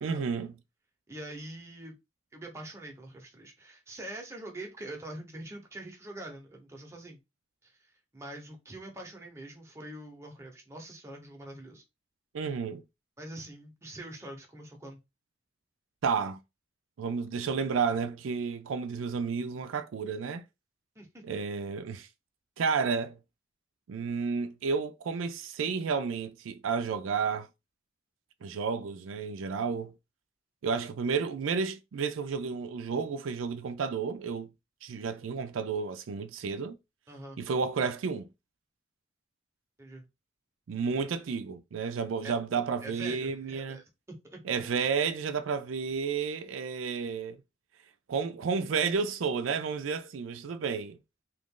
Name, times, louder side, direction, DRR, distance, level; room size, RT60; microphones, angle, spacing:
voice 1, 0.0-0.5 12.3-12.8 16.0-16.4 17.0-20.4 21.2-22.1 22.6-23.2 23.9-27.5 28.4-29.9 30.6-34.5 34.8-36.7 37.4-38.3 40.7-43.8 44.4-47.4 48.1-51.0, right 5 dB, 80° right, 0.4 m, -31 dB
voice 2, 1.1-2.0 2.3-7.2 7.6-7.7 8.1-11.8 13.2-15.0 21.0-21.2 37.1-37.4 39.8-40.0 42.2-42.3 42.8-44.4, right 1 dB, 15° right, 0.8 m, -44 dB
2.9 x 2.4 x 3.7 m
head